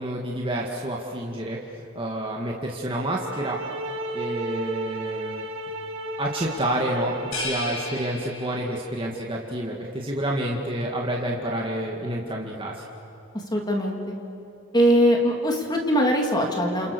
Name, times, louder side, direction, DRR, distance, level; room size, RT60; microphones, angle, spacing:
voice 1, 0.0-3.6 4.1-5.5 6.2-12.8, right 1 dB, 25° right, -2 dB, 2.2 m, -29 dB
sound 1, 3.1-8.0, right 2 dB, 85° right, 6.0 m, -34 dB
sound 2, 7.3-9.0, left 3 dB, 85° left, 7.6 m, -34 dB
voice 2, 13.5-14.1 14.7-16.9, equal, 20° left, 1 dB, 2.9 m, -21 dB
30.0 x 28.5 x 7.0 m, 2.9 s
head